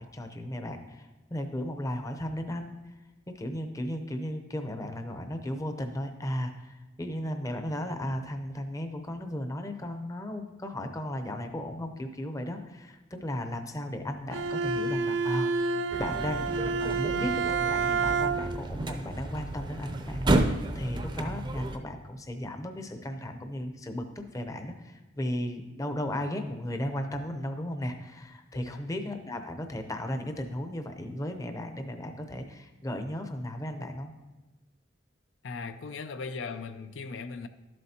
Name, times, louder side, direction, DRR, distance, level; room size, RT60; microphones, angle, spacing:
voice 1, 0.0-2.8 3.3-15.5 16.0-16.5 16.8-17.4 17.7-34.1, left 1 dB, 20° left, 6 dB, 0.6 m, -35 dB
Bowed string instrument, 14.3-18.7, right 4 dB, 75° right, 0.4 m, -29 dB
sound 1, 15.9-21.8, right 1 dB, 25° right, 0.5 m, -31 dB
voice 2, 16.8-17.2 28.5-28.8 35.4-37.5, left 4 dB, 80° left, 9 dB, 0.5 m, -39 dB
12.0 x 7.7 x 2.8 m, 1.1 s
head